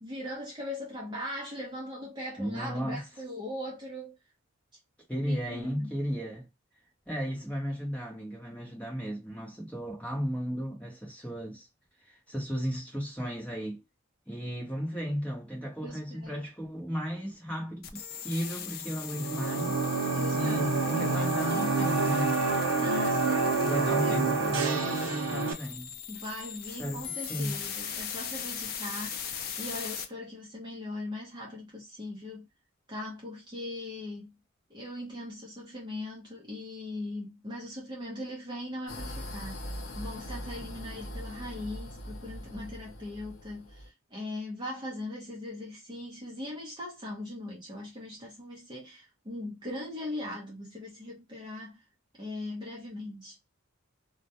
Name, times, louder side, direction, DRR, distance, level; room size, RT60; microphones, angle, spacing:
voice 1, 0.0-4.2 5.3-5.9 15.8-16.4 20.1-21.8 22.8-24.6 26.1-32.5 32.9-34.3 34.7-39.6 40.0-51.8 52.2-53.5, left 1 dB, 20° right, 0.6 m, -40 dB
voice 2, 2.4-3.0 5.1-6.5 7.1-11.7 12.1-13.8 14.3-22.4 22.8-23.2 23.6-26.0 26.8-27.6, equal, 5° left, 0.9 m, -35 dB
sound 1, 17.8-30.0, left 8 dB, 45° left, 0.4 m, -39 dB
sound 2, 19.1-25.5, right 4 dB, 80° right, 0.5 m, -28 dB
sound 3, 38.9-43.9, equal, 70° left, 0.7 m, -41 dB
2.2 x 2.2 x 2.7 m
head